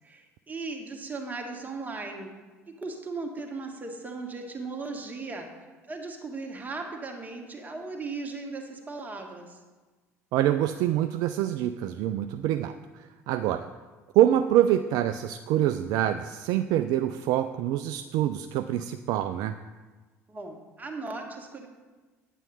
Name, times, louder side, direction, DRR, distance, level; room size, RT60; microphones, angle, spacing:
voice 1, 0.0-2.3 2.7-5.5 5.9-9.6 20.3-21.7, right 3 dB, 20° right, 2 dB, 1.7 m, -37 dB
voice 2, 10.3-13.7 14.1-19.5, right 12 dB, 50° right, 9 dB, 0.4 m, -25 dB
9.1 x 8.9 x 4.2 m, 1.3 s
figure-of-eight pair, 60°, 8 cm